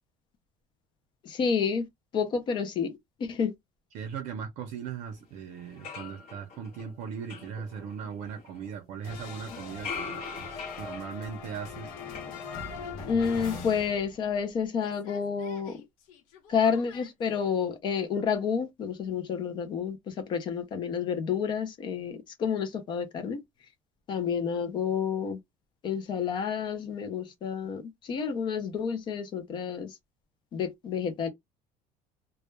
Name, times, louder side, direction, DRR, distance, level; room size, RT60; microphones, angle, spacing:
voice 1, 1.2-1.9 2.1-2.9 3.2-3.5 13.1-15.7 16.5-20.0 20.3-23.4 24.1-25.4 25.8-29.9 30.5-31.3, left 6 dB, 35° left, 0.4 m, -29 dB
voice 2, 3.9-10.2 10.8-11.9, right 7 dB, 55° right, 0.5 m, -38 dB
sound 1, 5.2-5.3 5.6-8.7 9.1-13.0 13.3-14.0, left 5 dB, 50° left, 0.9 m, -43 dB
sound 2, 9.0-14.5 14.8-17.1, left 5 dB, 80° left, 0.8 m, -42 dB
2.1 x 2.1 x 3.0 m
cardioid pair, 180°, 14 cm